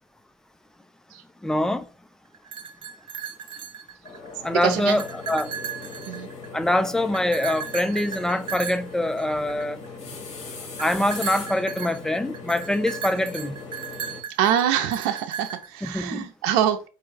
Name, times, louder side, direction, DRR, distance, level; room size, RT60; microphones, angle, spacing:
voice 1, 1.4-1.9 4.4-5.5 6.5-9.8 10.8-13.6 15.8-16.3, left 1 dB, 5° left, 0.4 m, -24 dB
sound 1, 2.3-4.3 4.7-6.6 7.1-9.9 10.8-15.9, right 7 dB, 40° right, 0.7 m, -36 dB
sound 2, 4.0-14.2, left 4 dB, 55° left, 2.0 m, -39 dB
voice 2, 4.5-5.0 6.1-6.3 14.4-16.9, right 10 dB, 85° right, 0.6 m, -24 dB
4.8 x 2.3 x 4.6 m
cardioid pair, 125°, 14 cm